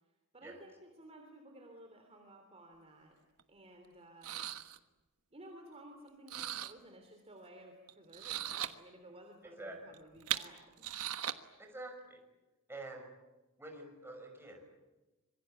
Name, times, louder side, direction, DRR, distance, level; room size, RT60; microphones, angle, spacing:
voice 1, 0.3-3.2 3.5-4.5 5.3-10.8, right 1 dB, 30° right, 4 dB, 3.2 m, -55 dB
sound 1, 3.4-3.5 4.2-4.8 6.3-6.7 7.9-8.7 9.9-11.3, right 11 dB, 85° right, 1.3 m, -38 dB
voice 2, 9.4-9.9 11.6-12.2 12.7-13.1 13.6-14.8, right 2 dB, 10° right, 3 dB, 6.0 m, -47 dB
26.0 x 23.0 x 9.1 m, 1.1 s
head